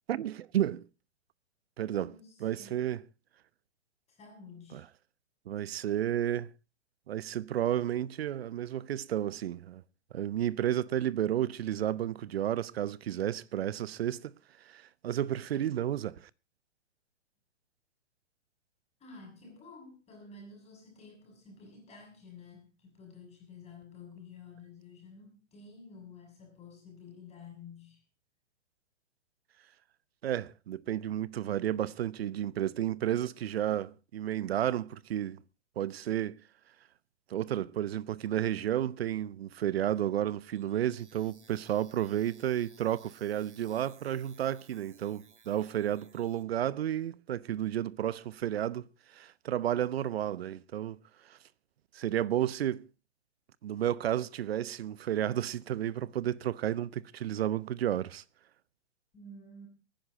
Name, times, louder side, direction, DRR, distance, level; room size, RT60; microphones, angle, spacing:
voice 1, 0.1-0.9 1.8-2.1 2.4-3.0 4.7-4.8 5.5-6.5 7.1-9.8 10.1-16.3 30.2-35.4 35.8-36.4 37.3-51.4 51.9-52.9 53.6-58.2, right 11 dB, 60° right, 0.9 m, -32 dB
voice 2, 1.9-3.0 4.1-4.9 19.0-28.0 59.1-59.7, left 4 dB, 20° left, 6.8 m, -51 dB
sound 1, 40.4-46.4, right 5 dB, 80° right, 2.3 m, -61 dB
24.0 x 10.5 x 3.7 m
figure-of-eight pair, 120°, 35 cm